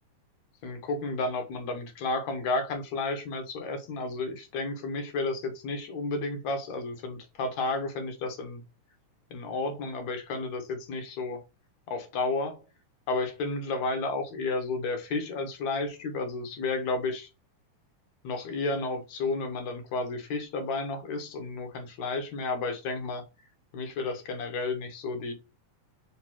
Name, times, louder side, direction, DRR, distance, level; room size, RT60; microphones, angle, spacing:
voice 1, 0.6-8.6 9.3-11.4 11.9-12.6 13.1-17.3 18.2-23.2 23.7-25.3, left 3 dB, 65° left, 2.5 m, -32 dB
5.2 x 4.0 x 5.9 m
omnidirectional pair, 3.6 m